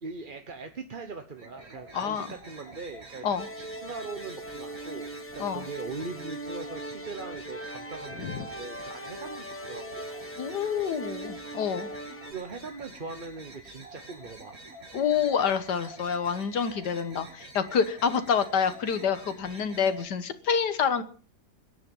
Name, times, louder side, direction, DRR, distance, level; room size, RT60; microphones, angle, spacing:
voice 1, 0.0-3.3 3.5-5.1 5.3-10.1 12.2-14.6, right 4 dB, 35° right, 6 dB, 1.1 m, -41 dB
sound 1, 1.3-20.0, right 1 dB, 60° right, 3.9 m, -48 dB
voice 2, 1.9-2.3 3.2-3.5 5.4-5.7 8.2-8.5 10.4-11.9 14.9-21.0, left 7 dB, 85° left, 12 dB, 1.9 m, -27 dB
sound 2, 3.4-12.3, right 1 dB, 10° left, 1.0 m, -40 dB
21.5 x 10.0 x 5.4 m, 0.41 s
omnidirectional pair, 1.8 m